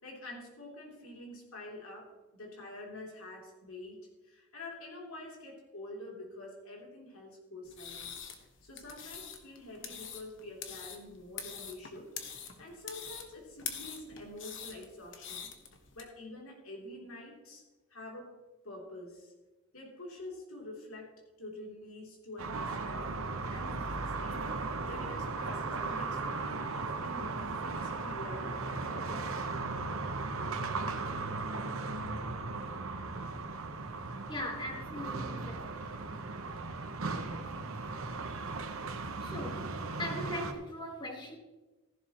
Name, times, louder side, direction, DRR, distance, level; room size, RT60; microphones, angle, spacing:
voice 1, 0.0-8.1 8.6-12.1 12.6-15.5 15.9-17.6 17.9-18.3 18.6-19.3 19.7-23.1 23.5-24.5 24.8-29.1, left 1 dB, 80° left, -1 dB, 3.3 m, -47 dB
sound 1, 7.7-16.0, left 7 dB, 60° left, 1.3 m, -44 dB
sound 2, 22.4-40.5, right 3 dB, 70° right, 1.1 m, -37 dB
voice 2, 34.3-35.7 38.5-38.6 39.2-41.4, left 1 dB, 20° left, 1 dB, 1.8 m, -40 dB
14.0 x 11.5 x 3.1 m, 1.1 s
head